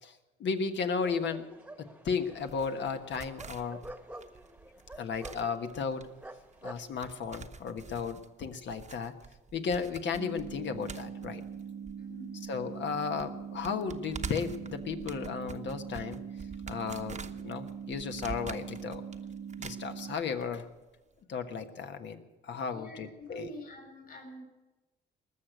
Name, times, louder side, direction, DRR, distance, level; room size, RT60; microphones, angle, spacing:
voice 1, 0.0-1.5 1.8-3.8 5.0-6.0 6.6-9.1 9.5-11.4 12.4-16.2 16.7-19.0 19.6-20.6 21.3-23.5, left 5 dB, 65° left, 7 dB, 1.4 m, -34 dB
sound 1, 1.0-6.8, right 1 dB, 5° right, 1.2 m, -49 dB
sound 2, 2.4-12.5 12.7-12.8 13.2-20.5 20.7-20.8, right 5 dB, 35° right, 1.0 m, -46 dB
sound 3, 10.1-20.1, right 7 dB, 65° right, 0.6 m, -42 dB
voice 2, 12.0-12.4 22.7-24.4, equal, 45° left, 2 dB, 3.6 m, -46 dB
20.0 x 6.7 x 9.1 m, 1.1 s
cardioid pair, 90°, 20 cm